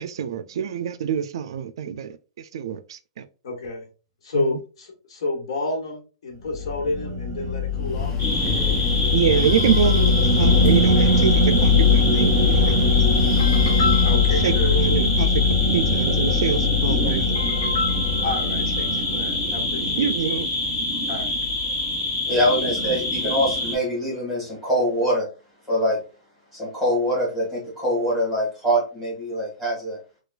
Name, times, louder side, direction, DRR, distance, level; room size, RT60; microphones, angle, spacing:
voice 1, 0.0-3.2 4.3-4.6 9.1-13.4 14.4-15.4 15.7-17.4 20.0-20.5, right 8 dB, 65° right, 0.3 m, -26 dB
voice 2, 3.4-3.8 4.2-8.1 9.4-9.8 10.3-10.9 11.3-11.4 13.4-15.0 17.3-20.1 21.1-21.3, left 3 dB, 75° left, 1.2 m, -30 dB
sound 1, 6.5-20.1, left 3 dB, 30° right, 0.7 m, -21 dB
Breathing, 7.7-14.3, left 3 dB, 20° left, 0.3 m, -33 dB
sound 2, 8.2-23.8, left 2 dB, 40° left, 1.5 m, -26 dB
voice 3, 22.2-25.3 25.7-26.0 26.5-30.0, equal, 5° left, 1.6 m, -24 dB
4.3 x 2.2 x 2.4 m
supercardioid pair, 175°, 3 cm